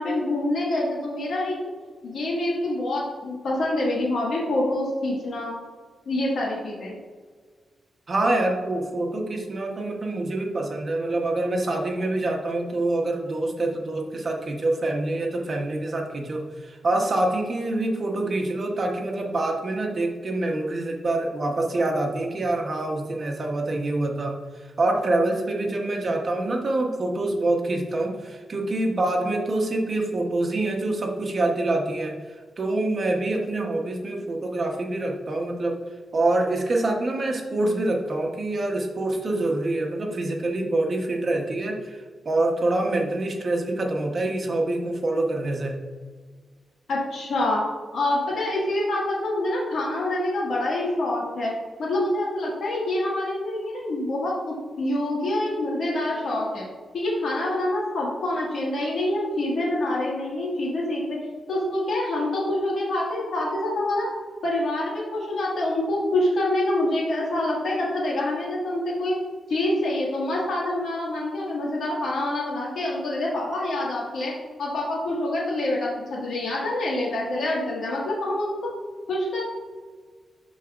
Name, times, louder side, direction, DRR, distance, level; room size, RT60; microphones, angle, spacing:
voice 1, 0.0-1.6 2.0-5.5 6.1-6.9 46.9-47.6 47.9-51.5 51.8-56.7 56.9-61.2 61.5-64.1 64.4-69.2 69.5-74.3 74.6-78.7 79.1-79.4, left 1 dB, 70° left, -5 dB, 1.9 m, -26 dB
voice 2, 8.1-32.1 32.6-35.8 36.1-45.8, right 2 dB, 35° right, 1 dB, 1.0 m, -26 dB
12.0 x 4.1 x 2.5 m, 1.5 s
wide cardioid pair, 150°, 0 cm